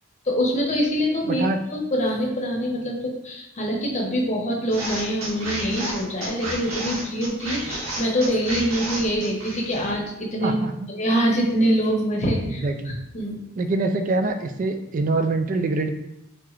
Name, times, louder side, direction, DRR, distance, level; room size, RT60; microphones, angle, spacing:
voice 1, 0.2-1.4 1.7-10.6 10.9-13.4, equal, 35° left, -1 dB, 0.8 m, -24 dB
voice 2, 1.2-1.6 10.4-10.9 12.4-13.0 13.6-15.9, right 3 dB, 40° right, 7 dB, 0.3 m, -24 dB
sound 1, 4.7-9.9, right 1 dB, 85° right, 1.2 m, -31 dB
4.5 x 3.1 x 2.4 m, 0.83 s
head